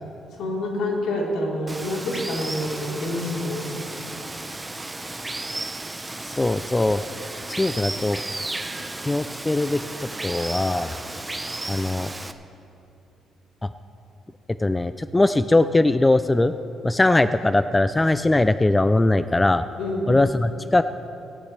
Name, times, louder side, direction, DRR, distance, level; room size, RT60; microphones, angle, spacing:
voice 1, 0.3-3.8 19.8-20.0, left 1 dB, 75° left, -4 dB, 3.8 m, -27 dB
Water, 1.7-12.3, right 2 dB, 15° right, 0.8 m, -34 dB
voice 2, 6.2-7.0 7.5-8.2 9.0-9.8 10.2-10.9 11.7-12.1 14.6-16.5 16.8-19.6 20.1-20.8, left 2 dB, 15° left, 12 dB, 0.4 m, -20 dB
18.0 x 16.0 x 3.3 m, 2.7 s
cardioid pair, 90°, 0 cm